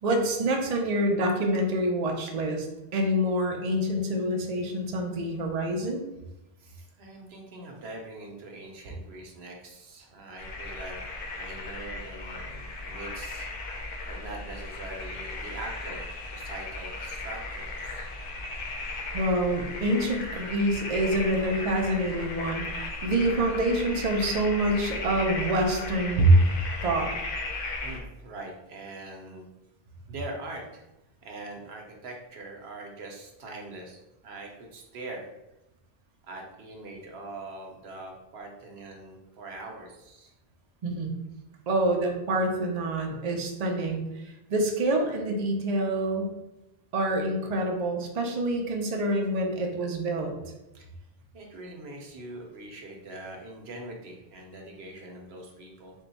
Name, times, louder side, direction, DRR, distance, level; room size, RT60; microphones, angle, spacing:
voice 1, 0.0-2.7 2.9-6.0 19.1-26.3 26.8-27.1 40.8-41.1 41.7-46.3 46.9-50.3, right 1 dB, 45° right, 2 dB, 0.6 m, -26 dB
voice 2, 6.6-11.0 11.3-13.5 14.1-16.1 16.3-18.1 27.8-29.5 30.1-30.8 31.2-35.3 36.3-40.3 50.7-50.9 51.3-55.9, right 2 dB, 75° right, 1 dB, 1.0 m, -42 dB
sound 1, 10.4-28.0, left 2 dB, 65° left, 0.8 m, -36 dB
3.6 x 2.2 x 4.0 m, 0.94 s
omnidirectional pair, 1.1 m